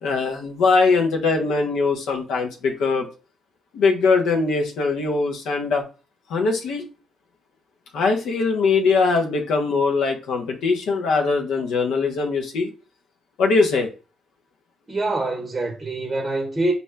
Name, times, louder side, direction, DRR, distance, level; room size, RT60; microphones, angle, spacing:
voice 1, 0.0-3.1 3.7-5.8 6.3-6.8 7.9-12.7 13.4-13.9, left 4 dB, 80° left, 0.8 m, -21 dB
voice 2, 14.9-16.7, right 2 dB, 25° right, 0.7 m, -25 dB
4.2 x 2.3 x 3.3 m
cardioid pair, 90°, 0 cm